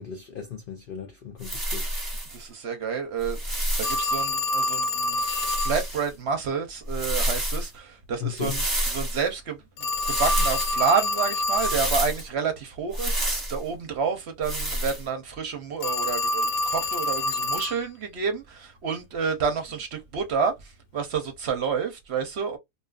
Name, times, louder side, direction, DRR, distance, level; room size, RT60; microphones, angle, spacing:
voice 1, 0.0-1.9 8.2-8.6, left 8 dB, 65° left, 0.5 m, -36 dB
sound 1, 1.4-2.4 3.2-4.2 5.2-6.1 6.9-7.7 8.4-9.2 10.0-10.8 11.5-12.2 12.9-13.6 14.4-15.0, right 1 dB, 15° right, 0.9 m, -28 dB
voice 2, 2.3-5.2 5.5-22.6, right 5 dB, 60° right, 0.8 m, -29 dB
Telephone, 3.8-5.8 9.8-11.8 15.8-17.8, left 1 dB, 85° left, 1.1 m, -27 dB
2.7 x 2.4 x 2.3 m
omnidirectional pair, 1.5 m